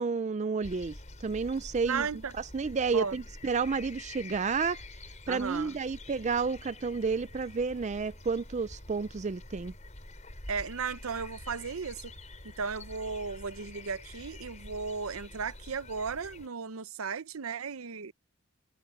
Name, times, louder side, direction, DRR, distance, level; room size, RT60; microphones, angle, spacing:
voice 1, 0.0-2.1 2.4-4.8 5.3-9.7, right 5 dB, 35° right, 0.4 m, -31 dB
sound 1, 0.6-16.5, left 2 dB, 35° left, 5.0 m, -47 dB
voice 2, 1.8-2.3 2.9-3.1 5.3-5.7 10.5-12.1 12.6-18.1, right 5 dB, 80° right, 0.7 m, -35 dB
head